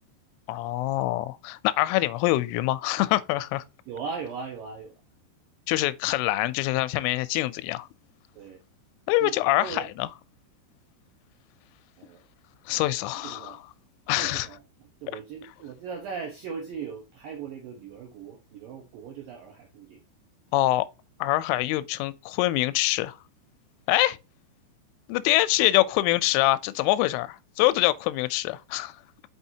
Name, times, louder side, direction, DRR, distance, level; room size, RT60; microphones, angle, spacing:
voice 1, 0.5-3.6 5.7-7.9 9.1-10.1 12.7-13.6 14.1-14.5 20.5-20.9 21.2-23.2 23.9-24.2 25.1-29.0, left 17 dB, 90° left, 3.1 m, -25 dB
voice 2, 3.9-5.0 8.4-8.6 9.2-9.3 9.6-9.9 12.0-12.2 13.1-13.6 14.2-20.0, right 6 dB, 75° right, 2.0 m, -39 dB
6.3 x 5.8 x 2.8 m
omnidirectional pair, 5.5 m